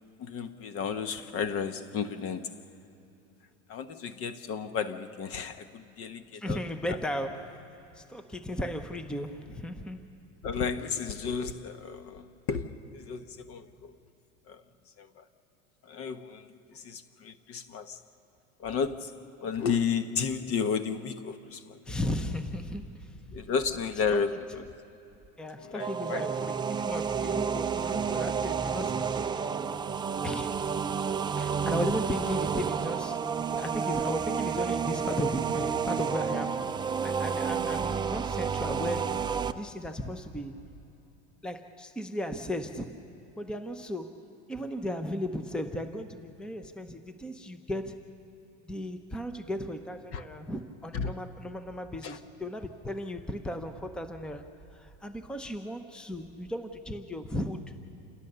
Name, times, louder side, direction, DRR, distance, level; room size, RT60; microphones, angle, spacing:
voice 1, 0.2-2.6 3.7-6.6 10.4-13.9 14.5-14.6 15.0-15.2 15.8-18.0 18.6-19.1 19.4-21.8 23.3-24.7 25.6-26.3 50.1-50.2 50.9-51.2 52.0-52.2, left 6 dB, 40° left, 1.1 m, -33 dB
voice 2, 6.3-7.7 7.9-10.0 21.9-23.2 24.1-24.2 25.4-29.3 30.2-30.7 31.3-36.8 37.0-40.5 41.4-43.0 43.4-48.1 48.6-57.6, left 1 dB, ahead, 0.8 m, -36 dB
sound 1, 25.8-39.5, right 6 dB, 15° right, 0.4 m, -30 dB
28.0 x 17.5 x 6.9 m
supercardioid pair, 125°, 35 cm